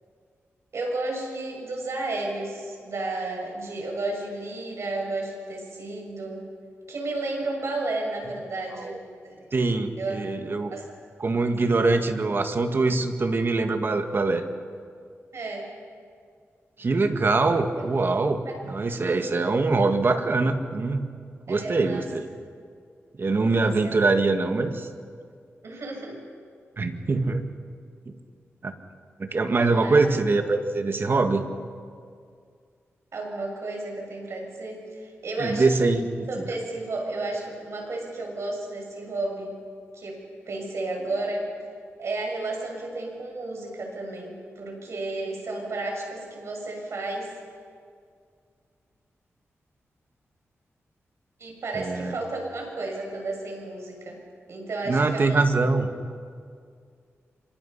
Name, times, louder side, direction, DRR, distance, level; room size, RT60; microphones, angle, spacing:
voice 1, 0.7-6.4 6.9-9.4 10.0-10.2 10.7-10.9 15.3-15.7 17.9-18.0 18.5-18.6 21.5-22.1 23.6-23.9 25.6-26.2 29.6-30.0 33.1-36.0 36.3-39.5 39.9-40.2 40.5-41.5 42.0-47.3 51.4-54.2 54.5-55.5, right 2 dB, 65° right, 1 dB, 7.0 m, -32 dB
voice 2, 9.5-10.8 11.2-14.5 16.8-21.1 21.5-22.3 23.2-24.9 26.8-27.5 28.1-28.2 28.6-28.7 29.2-31.4 35.4-36.5 51.7-52.2 54.9-55.9, right 3 dB, 45° right, 6 dB, 1.9 m, -23 dB
28.0 x 26.0 x 5.7 m, 2.2 s
wide cardioid pair, 85°, 5 cm